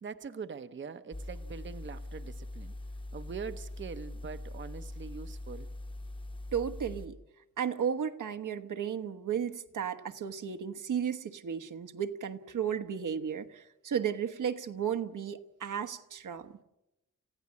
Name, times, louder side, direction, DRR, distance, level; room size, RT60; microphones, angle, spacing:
voice 1, 0.0-2.7 3.1-5.7, right 6 dB, 35° right, 10 dB, 0.8 m, -43 dB
sound 1, 1.1-7.1, left 1 dB, 15° left, 1.0 m, -42 dB
voice 2, 6.5-7.2 7.6-16.6, right 8 dB, 75° right, 8 dB, 1.3 m, -34 dB
29.0 x 16.0 x 8.5 m, 0.93 s
wide cardioid pair, 165°, 31 cm